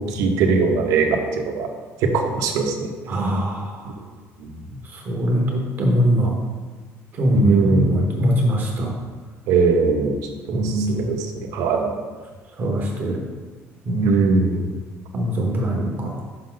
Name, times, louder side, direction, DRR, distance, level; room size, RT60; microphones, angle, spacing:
voice 1, 0.1-1.1 1.4-1.7 2.0-2.9 4.4-4.5 7.3-8.0 9.5-10.1 10.5-12.0 14.0-14.6, right 4 dB, 90° right, 3 dB, 0.9 m, -20 dB
voice 2, 3.1-3.8 4.9-6.3 7.2-9.0 10.5-11.1 12.6-13.2 13.9-14.2 15.1-16.2, equal, 35° right, 0 dB, 0.9 m, -22 dB
5.9 x 5.4 x 3.8 m, 1.4 s
cardioid pair, 170°, 6 cm